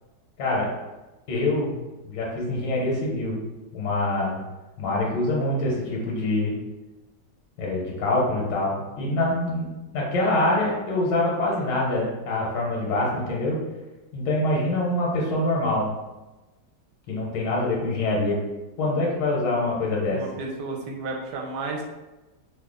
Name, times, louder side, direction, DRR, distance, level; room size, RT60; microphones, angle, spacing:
voice 1, 0.4-0.7 1.3-1.8 2.0-3.4 3.7-4.4 4.8-6.6 7.6-9.7 9.9-13.6 14.1-15.9 17.1-18.4 18.8-20.2, left 2 dB, 90° left, -3 dB, 1.4 m, -25 dB
voice 2, 20.1-21.8, right 3 dB, 75° right, 0 dB, 1.1 m, -32 dB
3.1 x 2.1 x 3.6 m, 1.1 s
omnidirectional pair, 1.9 m